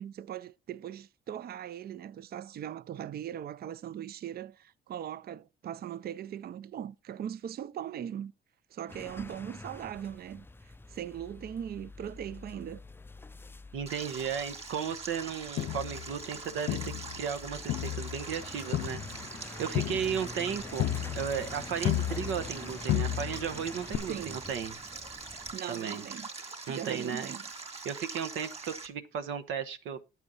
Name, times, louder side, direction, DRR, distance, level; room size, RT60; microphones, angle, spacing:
voice 1, 0.0-8.3 8.7-12.8 24.1-24.4 25.5-26.3 26.7-27.4, right 10 dB, 50° right, 0.5 m, -40 dB
sound 1, 8.9-25.6, left 2 dB, 10° left, 0.4 m, -47 dB
voice 2, 13.7-19.0 19.6-24.7 25.7-26.0 26.7-27.3 27.8-30.0, right 7 dB, 85° right, 1.0 m, -35 dB
Stream, 13.9-28.9, right 4 dB, 30° right, 2.5 m, -43 dB
Crowd, 15.6-17.4 17.7-22.6 22.9-23.6 23.9-24.0, left 13 dB, 70° left, 0.5 m, -33 dB
9.1 x 8.4 x 3.9 m
cardioid pair, 90°, 20 cm